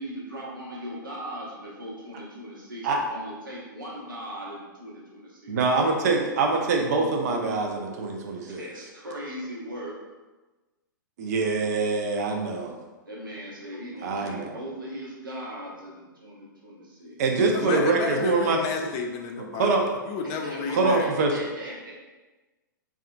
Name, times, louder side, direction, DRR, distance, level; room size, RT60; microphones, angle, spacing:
voice 1, 0.0-6.2 8.5-9.9 13.0-17.2 20.2-21.9, equal, 80° right, -5 dB, 1.0 m, -39 dB
voice 2, 5.5-8.6 11.2-12.8 14.0-14.6 17.2-18.6 19.5-19.8 20.7-21.3, right 3 dB, 55° right, 2 dB, 0.5 m, -24 dB
voice 3, 17.5-21.1, left 5 dB, 30° left, 3 dB, 0.4 m, -31 dB
3.5 x 2.3 x 2.4 m, 1.2 s
figure-of-eight pair, 115°, 11 cm